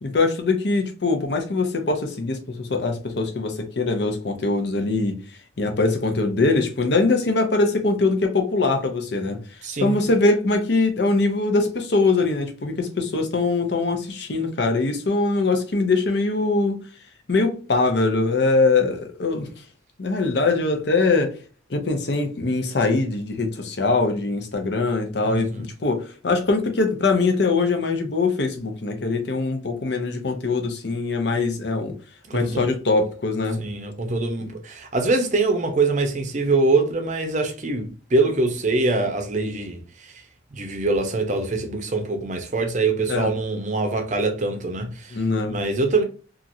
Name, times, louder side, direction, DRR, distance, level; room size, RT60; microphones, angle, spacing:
voice 1, 0.0-5.2 5.6-9.4 9.8-16.8 17.3-19.5 20.0-21.3 21.7-31.9 32.3-33.6 43.1-43.3 45.1-45.6, left 3 dB, 65° left, 0.7 m, -22 dB
voice 2, 9.6-10.0 25.3-25.7 32.3-32.7 33.6-40.1 40.5-45.2 45.5-46.0, right 3 dB, 40° right, 0.6 m, -24 dB
2.9 x 2.5 x 2.5 m
head